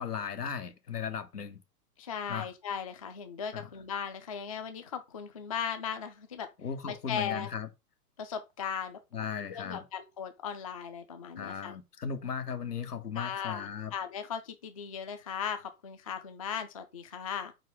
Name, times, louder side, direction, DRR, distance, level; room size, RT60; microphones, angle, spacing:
voice 1, 0.0-1.6 2.3-2.5 3.5-3.7 6.6-7.7 9.1-9.8 11.4-13.9, left 7 dB, 75° left, 1.1 m, -36 dB
voice 2, 2.0-6.5 6.8-7.5 8.2-9.0 9.5-11.8 13.2-17.5, left 7 dB, 25° left, 0.3 m, -37 dB
4.9 x 4.2 x 4.7 m
figure-of-eight pair, 115°, 47 cm